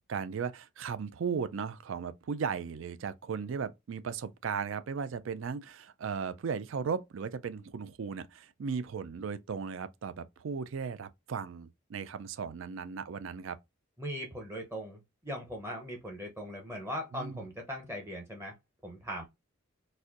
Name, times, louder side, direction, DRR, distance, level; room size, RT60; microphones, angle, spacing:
voice 1, 0.1-13.6 17.1-17.5, right 6 dB, 65° right, 0.4 m, -36 dB
voice 2, 14.0-18.6 18.8-19.3, equal, 10° right, 0.7 m, -39 dB
4.1 x 2.6 x 2.4 m
head